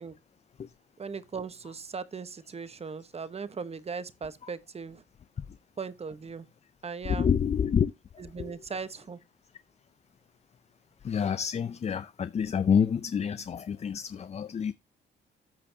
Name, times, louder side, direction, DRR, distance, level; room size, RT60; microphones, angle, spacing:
voice 1, 1.0-5.0 5.8-6.5 6.8-7.3 8.2-9.2, right 5 dB, 30° right, 1.0 m, -38 dB
voice 2, 7.0-7.9 8.4-8.5 11.0-14.7, left 7 dB, 35° left, 0.5 m, -28 dB
13.5 x 5.1 x 2.8 m
cardioid pair, 90°, 20 cm